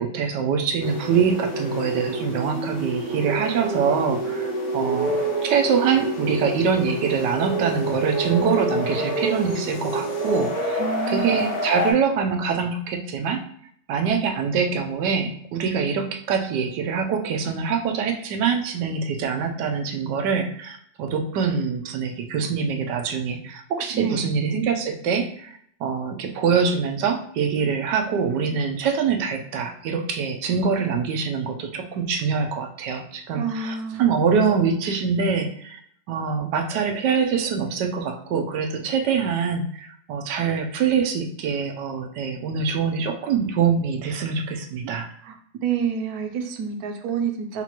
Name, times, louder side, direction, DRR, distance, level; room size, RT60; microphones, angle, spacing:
voice 1, 0.0-5.2 5.4-10.8 11.1-13.4 13.9-35.8 36.1-45.1, right 6 dB, 85° right, 4 dB, 1.3 m, -24 dB
sound 1, 0.8-11.9, right 1 dB, 55° left, 1.5 m, -27 dB
voice 2, 10.8-11.6 23.9-24.3 33.4-34.1 45.2-47.6, right 6 dB, 70° right, 4 dB, 1.1 m, -28 dB
5.5 x 2.5 x 2.9 m, 0.65 s
omnidirectional pair, 1.8 m